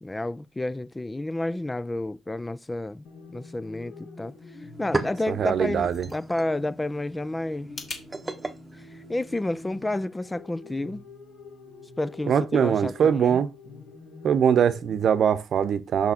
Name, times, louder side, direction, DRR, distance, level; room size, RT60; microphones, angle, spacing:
voice 1, 0.0-4.3 4.8-7.7 8.9-11.0 12.0-13.4, left 2 dB, 15° left, 0.3 m, -30 dB
sound 1, 3.0-15.0, left 3 dB, 70° left, 2.2 m, -47 dB
sound 2, 4.2-4.3 4.6-9.8, right 2 dB, 15° right, 1.0 m, -36 dB
voice 2, 5.3-6.1 12.3-13.5 14.2-16.1, right 8 dB, 60° right, 0.8 m, -22 dB
sound 3, 5.4-8.1, left 3 dB, 50° left, 2.7 m, -44 dB
6.0 x 5.7 x 4.3 m
cardioid pair, 90°, 0 cm